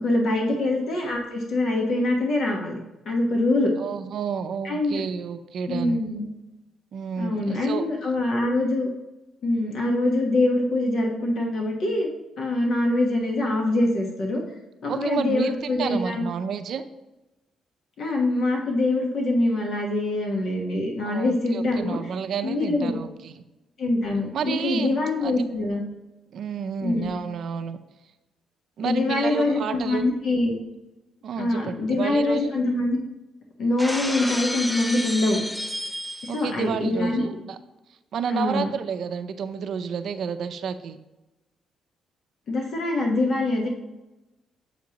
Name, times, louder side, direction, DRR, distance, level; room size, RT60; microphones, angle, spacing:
voice 1, 0.0-2.8 3.0-3.7 4.6-5.0 5.7-6.3 7.2-8.9 9.4-12.1 12.4-14.4 14.8-16.3 18.0-22.0 22.4-23.0 23.8-25.8 26.8-27.1 28.8-30.5 31.4-33.0 33.6-35.4 36.2-37.4 38.3-38.7 42.5-43.7, left 2 dB, 65° left, 0 dB, 1.1 m, -24 dB
voice 2, 3.8-6.0 6.9-7.8 14.9-15.5 15.8-16.8 21.0-23.4 24.3-24.9 25.2-25.5 26.3-27.8 28.8-30.1 31.2-32.5 36.3-37.6 38.1-41.0, right 7 dB, 65° right, 8 dB, 0.5 m, -30 dB
Shatter, 33.8-36.5, left 1 dB, 10° left, 0.4 m, -31 dB
8.0 x 5.0 x 2.9 m, 1.0 s
cardioid pair, 90°, 0 cm